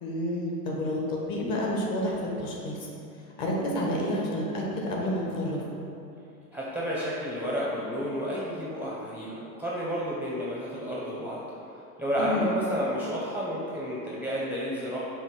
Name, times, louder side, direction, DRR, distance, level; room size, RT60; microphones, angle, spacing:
voice 1, 0.0-2.8 3.4-5.6 12.2-12.5, left 1 dB, 45° left, -2 dB, 1.2 m, -29 dB
voice 2, 6.5-11.4 12.0-15.0, equal, 5° right, -7 dB, 0.5 m, -31 dB
5.4 x 2.1 x 4.5 m, 2.8 s
hypercardioid pair, 85°, 48 cm